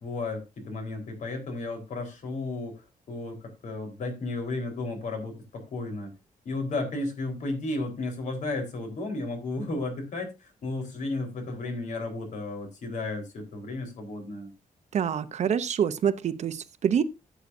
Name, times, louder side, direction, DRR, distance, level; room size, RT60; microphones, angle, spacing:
voice 1, 0.0-2.8 3.1-6.1 6.4-14.5, left 2 dB, 60° left, 4.3 m, -33 dB
voice 2, 14.9-17.0, right 8 dB, 55° right, 0.8 m, -26 dB
15.5 x 8.2 x 2.7 m
wide cardioid pair, 170°, 14 cm